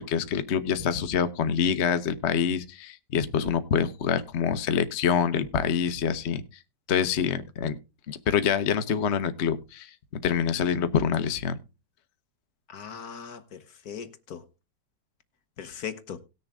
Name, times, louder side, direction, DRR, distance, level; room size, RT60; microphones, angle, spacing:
voice 1, 0.0-6.4 6.9-7.7 8.1-9.9 10.2-11.6, left 7 dB, 45° left, 1.1 m, -26 dB
voice 2, 12.7-14.4 15.6-16.2, left 7 dB, 60° left, 1.5 m, -39 dB
18.5 x 6.7 x 3.5 m
omnidirectional pair, 1.9 m